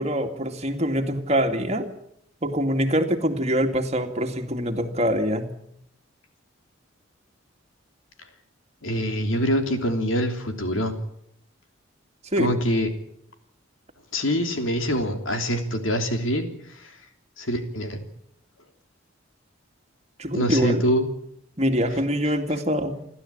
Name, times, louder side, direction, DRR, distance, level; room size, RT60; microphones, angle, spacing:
voice 1, 0.0-1.9 2.4-5.5 12.3-12.6 20.2-20.9 21.6-23.0, equal, 35° right, 5 dB, 2.3 m, -24 dB
voice 2, 8.8-10.9 12.4-12.9 14.1-16.9 17.4-18.0 20.3-21.1, equal, 85° left, 5 dB, 3.3 m, -25 dB
29.5 x 12.5 x 8.8 m, 0.74 s
head